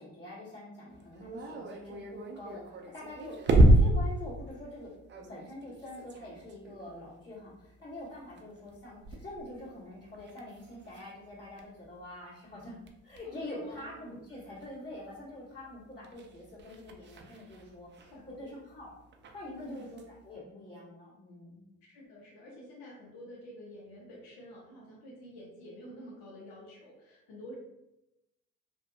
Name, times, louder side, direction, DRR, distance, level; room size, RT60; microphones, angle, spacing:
voice 1, 0.0-3.4 3.6-12.8 13.0-18.1 18.4-18.9 19.3-21.7, left 1 dB, 30° left, -12 dB, 1.3 m, -45 dB
sound 1, 0.9-12.0 12.5-15.2 15.5-20.2, right 1 dB, 30° right, 0.4 m, -31 dB
voice 2, 13.2-13.9 18.1-18.5 19.4-19.9 21.9-27.5, equal, 75° left, -2 dB, 0.7 m, -48 dB
2.6 x 2.2 x 2.6 m, 0.90 s
supercardioid pair, 55°, 35 cm